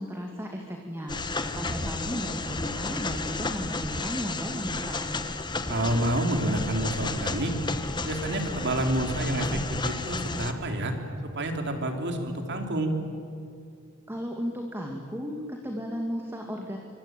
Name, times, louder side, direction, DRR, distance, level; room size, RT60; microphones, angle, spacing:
voice 1, 0.0-5.1 14.1-16.8, equal, 10° right, 1 dB, 2.2 m, -35 dB
sound 1, 1.1-10.5, left 3 dB, 20° left, 1.4 m, -32 dB
voice 2, 5.7-7.5 8.0-10.9 11.4-12.9, right 1 dB, 55° right, 4 dB, 3.4 m, -28 dB
25.5 x 25.0 x 9.1 m, 2.5 s
head